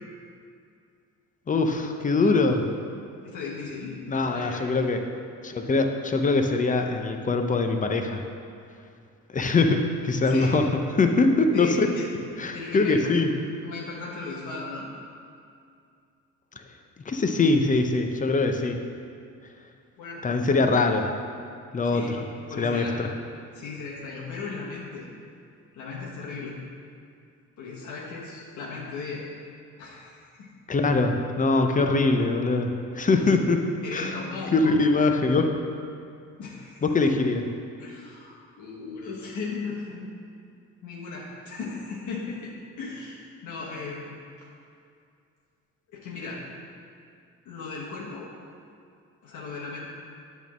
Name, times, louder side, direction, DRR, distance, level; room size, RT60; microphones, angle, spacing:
voice 1, 1.5-2.6 4.1-5.0 5.4-8.2 9.3-10.7 11.0-11.9 12.4-13.3 17.1-18.8 20.2-21.1 21.7-22.2 22.6-23.1 30.7-33.6 33.9-34.1 34.5-35.5 36.8-37.5, left 3 dB, 25° left, 5 dB, 0.6 m, -23 dB
voice 2, 3.2-4.6 10.2-10.5 11.5-12.1 12.5-13.1 13.6-14.9 20.0-20.4 21.8-22.2 22.5-23.0 23.5-25.1 25.7-26.6 27.6-29.2 29.8-30.5 33.2-33.4 33.8-34.8 36.4-36.8 37.8-40.1 40.8-44.1 45.9-46.4 47.4-48.3 49.2-49.8, left 4 dB, 80° left, -5 dB, 1.3 m, -37 dB
8.2 x 3.6 x 6.1 m, 2.4 s
cardioid pair, 90°, 30 cm